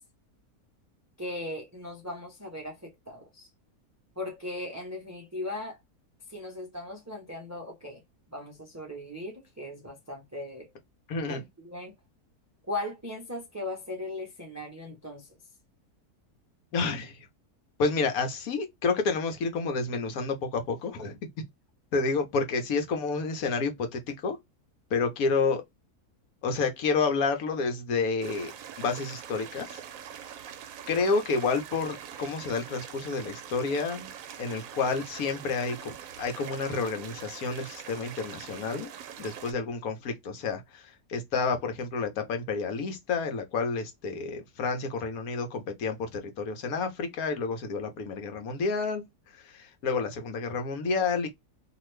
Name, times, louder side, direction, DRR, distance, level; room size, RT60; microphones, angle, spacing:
voice 1, 1.2-3.5 4.2-5.8 6.3-8.0 8.3-10.7 11.3-11.9 12.7-15.3, left 2 dB, 25° right, 0.3 m, -38 dB
voice 2, 11.1-11.4 16.7-17.3 17.8-21.2 21.9-24.4 24.9-25.6 26.4-28.5 28.8-29.8 30.9-34.1 34.4-38.9 39.2-49.0 49.3-51.3, left 4 dB, 70° left, 1.2 m, -29 dB
sound 1, 28.2-39.5, right 9 dB, 70° right, 0.9 m, -43 dB
2.8 x 2.5 x 3.1 m
omnidirectional pair, 1.6 m